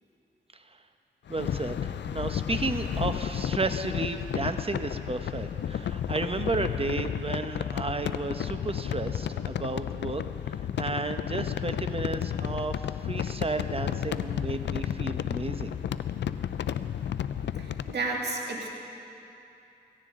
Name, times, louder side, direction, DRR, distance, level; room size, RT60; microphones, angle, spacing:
sound 1, 1.3-18.0, left 9 dB, 80° left, 0.4 m, -32 dB
voice 1, 1.3-15.8, right 3 dB, 30° right, 8 dB, 0.9 m, -33 dB
voice 2, 17.6-18.7, right 3 dB, 70° right, -1 dB, 1.9 m, -32 dB
17.0 x 15.5 x 3.7 m, 2.8 s
cardioid pair, 55°, 18 cm